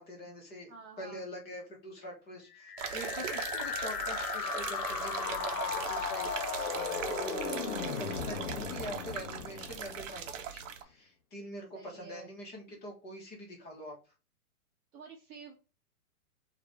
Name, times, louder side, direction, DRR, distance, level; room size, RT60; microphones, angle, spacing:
voice 1, 0.0-0.7 1.0-14.0, equal, 20° left, -1 dB, 1.5 m, -45 dB
voice 2, 0.7-1.2 11.7-12.3 14.9-15.5, right 5 dB, 25° right, -1 dB, 0.9 m, -50 dB
sound 1, 2.5-10.5, left 7 dB, 85° left, 0.8 m, -37 dB
sound 2, 2.8-10.8, right 8 dB, 55° right, 0.8 m, -39 dB
4.6 x 2.8 x 3.6 m, 0.32 s
hypercardioid pair, 140°, 44 cm